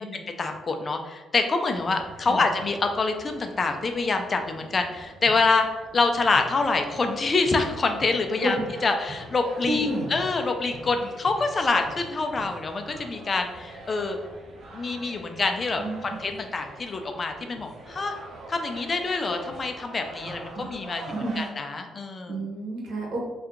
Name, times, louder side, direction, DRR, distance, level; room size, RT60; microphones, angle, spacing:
voice 1, 0.1-5.7 5.9-8.6 8.8-14.2 14.7-18.1 18.5-21.0 21.4-22.4, left 3 dB, 35° left, 5 dB, 0.4 m, -26 dB
sound 1, 1.7-21.5, right 2 dB, 55° right, 0.6 m, -44 dB
voice 2, 9.7-10.1 15.8-16.2 20.5-20.7 21.1-21.4 22.3-23.2, right 1 dB, 80° right, -3 dB, 1.1 m, -30 dB
2.8 x 2.3 x 3.6 m, 1.2 s
cardioid pair, 90°, 0 cm